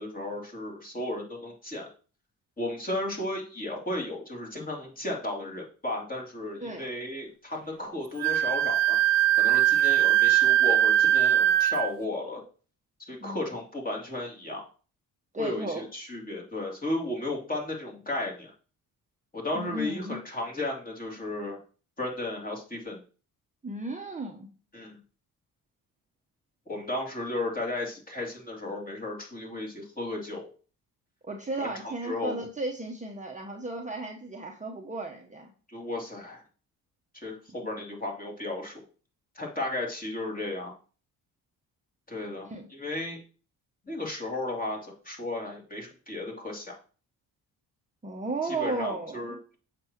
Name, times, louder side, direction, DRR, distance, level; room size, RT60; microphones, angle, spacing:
voice 1, 0.0-1.9 2.6-9.0 9.4-12.4 13.1-14.7 15.4-18.5 19.3-21.6 22.0-23.0 24.7-25.0 26.7-30.4 31.6-32.4 35.7-36.4 37.1-38.8 39.3-40.7 42.1-43.2 43.9-46.7 48.4-49.5, left 2 dB, 20° left, -1 dB, 2.8 m, -34 dB
Wind instrument woodwind instrument, 8.2-11.9, right 12 dB, 85° right, 0.5 m, -21 dB
voice 2, 15.3-15.9 19.5-20.2 23.6-24.5 31.2-35.5 42.4-42.7 48.0-49.4, right 2 dB, 20° right, 1 dB, 1.0 m, -34 dB
7.4 x 6.0 x 3.0 m, 0.38 s
supercardioid pair, 65°, 41 cm